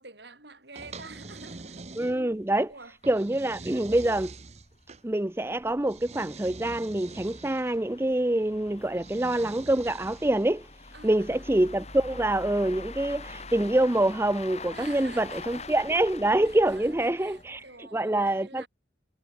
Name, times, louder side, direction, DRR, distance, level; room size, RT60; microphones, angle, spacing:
voice 1, 0.0-2.0 2.7-2.9 10.9-11.7 14.7-15.6 16.4-18.7, right 3 dB, 60° right, 5.2 m, -48 dB
sound 1, 0.8-2.4 3.0-5.0 5.9-7.8 8.9-10.5, right 3 dB, 35° right, 1.0 m, -44 dB
sound 2, 1.8-1.9 2.3-2.4 2.7-2.8 3.4-17.8, left 3 dB, 35° left, 7.6 m, -45 dB
voice 2, 2.0-2.7 3.1-4.3 5.0-10.7 11.0-17.7 17.9-18.7, right 1 dB, 10° right, 0.5 m, -26 dB
head